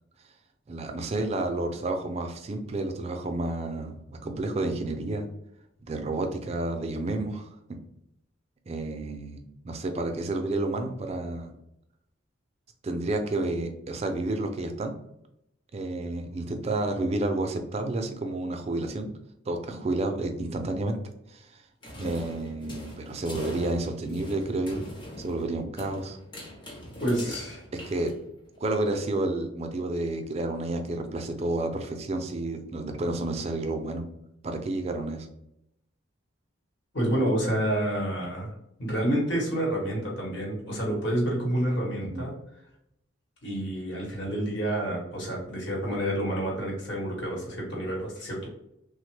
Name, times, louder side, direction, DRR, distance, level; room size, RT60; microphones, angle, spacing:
voice 1, 0.7-5.3 5.8-7.5 8.7-9.4 9.6-11.5 12.8-14.9 15.7-19.1 19.5-21.0 21.3-21.6 22.0-24.8 25.2-26.2 27.8-28.1 28.6-34.0 34.4-35.3 42.0-42.2, right 2 dB, 30° right, 5 dB, 0.4 m, -30 dB
sound 1, 21.8-28.6, left 1 dB, 25° left, 0.6 m, -42 dB
voice 2, 27.0-27.6 36.9-38.5 38.8-42.3 43.4-48.5, right 1 dB, 60° left, -2 dB, 1.1 m, -28 dB
3.3 x 2.1 x 3.1 m, 0.79 s
head